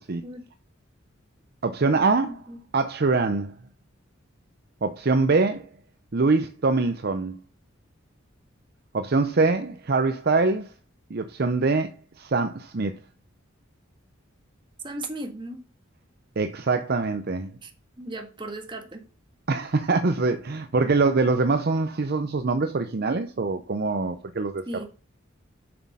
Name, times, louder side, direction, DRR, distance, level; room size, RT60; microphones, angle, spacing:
voice 1, 1.6-2.4 2.7-3.5 4.8-5.7 6.1-7.4 8.9-10.7 11.1-13.0 16.4-17.5 19.5-24.6, right 3 dB, 50° right, 0.6 m, -24 dB
voice 2, 2.3-2.6 14.8-15.6 17.6-19.0 24.7-24.9, right 1 dB, 25° right, 1.8 m, -37 dB
7.6 x 6.3 x 5.4 m
head